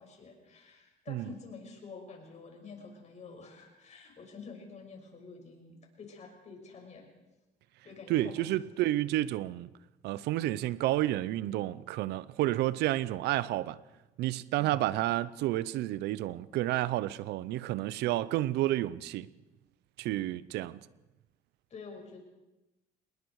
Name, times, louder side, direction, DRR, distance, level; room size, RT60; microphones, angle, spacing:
voice 1, 0.0-7.1 7.8-8.5 21.7-22.2, left 4 dB, 40° left, 6.2 m, -48 dB
voice 2, 8.1-9.7 10.0-13.8 14.2-19.3 20.0-20.8, right 15 dB, 85° right, 0.7 m, -30 dB
26.5 x 20.5 x 4.8 m
cardioid pair, 110°, 17 cm